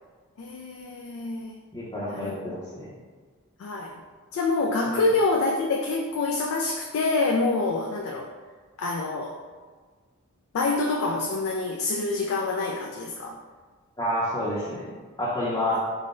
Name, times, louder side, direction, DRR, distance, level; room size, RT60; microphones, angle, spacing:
voice 1, 0.4-1.6 2.1-2.4 3.6-4.0 4.3-8.3 8.8-9.4 10.5-13.4, left 3 dB, 65° left, 1 dB, 0.3 m, -26 dB
voice 2, 1.7-2.9 4.9-5.0 14.0-14.9 15.2-15.9, left 1 dB, 15° left, -9 dB, 0.6 m, -29 dB
3.8 x 2.1 x 3.7 m, 1.5 s
head